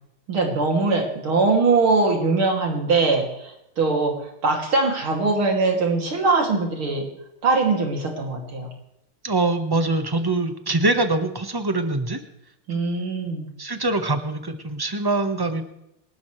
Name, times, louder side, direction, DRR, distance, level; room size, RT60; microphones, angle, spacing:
voice 1, 0.3-4.1 4.4-7.1 7.4-8.7 12.7-13.5, right 3 dB, 75° right, 1 dB, 3.6 m, -21 dB
voice 2, 9.2-12.2 12.7-12.8 13.6-15.6, right 2 dB, 15° right, 7 dB, 1.0 m, -23 dB
28.0 x 12.5 x 3.3 m, 0.83 s
omnidirectional pair, 2.3 m